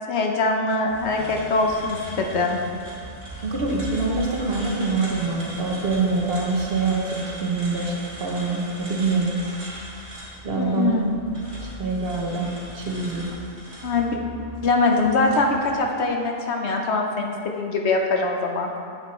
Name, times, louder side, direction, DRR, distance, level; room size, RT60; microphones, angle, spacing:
voice 1, 0.1-2.6 10.6-11.1 13.8-14.2 14.6-18.7, left 3 dB, 65° left, 2 dB, 0.9 m, -23 dB
sound 1, 0.8-15.8, right 1 dB, 25° right, 1.9 m, -39 dB
voice 2, 3.4-9.4 10.4-11.0 11.6-12.5 12.7-13.3, right 3 dB, 50° right, -1 dB, 1.1 m, -25 dB
8.3 x 7.7 x 3.2 m, 2.4 s
omnidirectional pair, 1.3 m